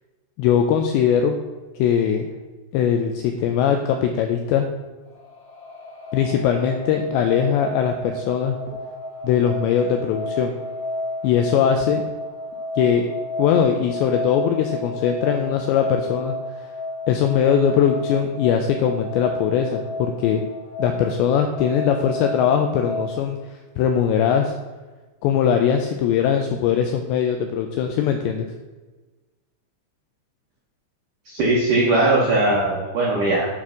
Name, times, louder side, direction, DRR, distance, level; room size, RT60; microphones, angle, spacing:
voice 1, 0.4-1.4 1.8-2.3 2.7-4.7 6.1-8.6 9.2-10.5 11.2-12.0 12.8-13.1 13.4-16.3 17.1-20.4 20.8-23.4 23.8-24.5 25.2-28.4, left 8 dB, 90° left, 5 dB, 2.5 m, -20 dB
sound 1, 5.1-23.2, left 1 dB, 45° left, 1.6 m, -32 dB
voice 2, 31.3-33.5, right 2 dB, 80° right, -3 dB, 1.8 m, -19 dB
9.6 x 4.4 x 6.1 m, 1.2 s
omnidirectional pair, 5.7 m